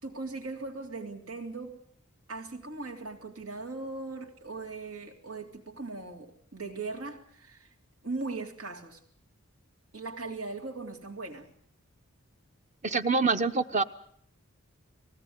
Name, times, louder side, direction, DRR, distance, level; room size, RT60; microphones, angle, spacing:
voice 1, 0.0-1.8 2.3-7.7 8.0-9.0 9.9-11.5, right 3 dB, 90° right, 2 dB, 3.3 m, -39 dB
voice 2, 12.8-13.8, right 4 dB, 35° right, 10 dB, 0.9 m, -25 dB
19.5 x 17.0 x 9.6 m, 0.65 s
head